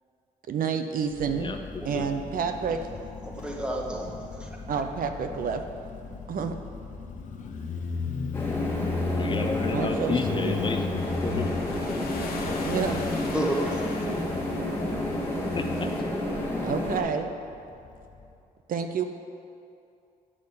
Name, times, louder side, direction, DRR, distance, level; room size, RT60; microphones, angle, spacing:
voice 1, 0.5-1.6 1.8-2.8 4.7-5.6 6.3-6.6 9.7-10.6 12.5-13.1 16.6-17.3 18.7-19.0, right 6 dB, 65° right, 7 dB, 0.6 m, -29 dB
Motorcycle, 1.1-18.3, left 4 dB, 55° left, 0.9 m, -36 dB
voice 2, 1.8-2.2 3.2-4.6 13.3-13.9, right 1 dB, 5° right, -1 dB, 1.4 m, -32 dB
sound 1, 8.3-17.0, left 1 dB, 15° left, 1.8 m, -30 dB
voice 3, 9.1-11.5 15.5-15.9, left 4 dB, 30° left, 5 dB, 0.6 m, -32 dB
sound 2, 11.0-16.0, left 3 dB, 90° left, 1.3 m, -41 dB
8.6 x 5.3 x 6.8 m, 2.6 s
cardioid pair, 105°, 15 cm